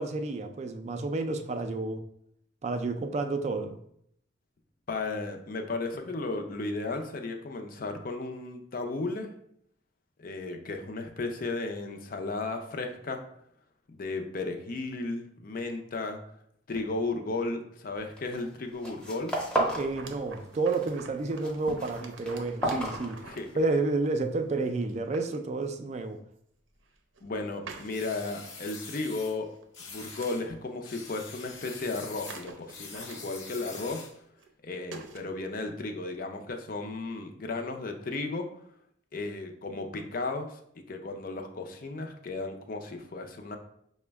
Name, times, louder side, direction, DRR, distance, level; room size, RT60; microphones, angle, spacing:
voice 1, 0.0-2.0 2.6-3.8 19.8-23.2 23.6-26.2, right 3 dB, 35° right, 7 dB, 0.3 m, -30 dB
voice 2, 4.9-9.3 10.2-13.2 13.9-16.2 16.7-19.4 23.2-23.6 27.2-29.5 29.8-34.1 34.6-38.5 39.1-40.6 40.9-43.6, left 3 dB, 50° left, 4 dB, 0.5 m, -34 dB
sound 1, 18.2-18.5 18.7-19.9 20.2-20.9 21.2-23.7, right 1 dB, 5° left, 0.6 m, -32 dB
sound 2, 19.8-23.5 24.3-24.4 24.9-25.4 26.0-26.1 26.8-27.3 27.7-28.3 28.6-28.8 29.0-29.2 29.5-30.3 31.3-31.4 31.6-31.7 31.9-33.6 34.4-34.5 34.9-35.2, right 4 dB, 85° right, 0.6 m, -47 dB
sound 3, 27.9-29.4 29.7-30.5 30.8-34.2, left 4 dB, 80° left, 0.8 m, -45 dB
5.9 x 2.1 x 3.4 m, 0.70 s
head